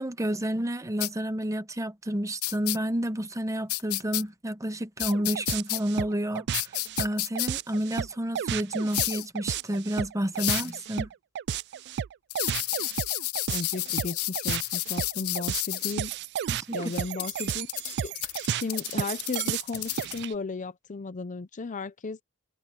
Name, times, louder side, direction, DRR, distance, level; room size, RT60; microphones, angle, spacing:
voice 1, 0.0-6.5 7.0-11.1 16.5-16.8, right 1 dB, 15° right, 1.0 m, -30 dB
sound 1, 1.0-1.1 2.4-2.8 3.7-4.2 5.0-5.8 6.5-7.5 8.9-9.3 10.4-10.7 12.3-15.9 16.9-20.2, left 17 dB, 80° left, 0.7 m, -31 dB
sound 2, 5.0-20.3, right 8 dB, 50° right, 0.3 m, -32 dB
voice 2, 13.5-16.1 16.7-17.7 18.0-18.1 18.5-22.2, left 3 dB, 35° left, 0.5 m, -35 dB
head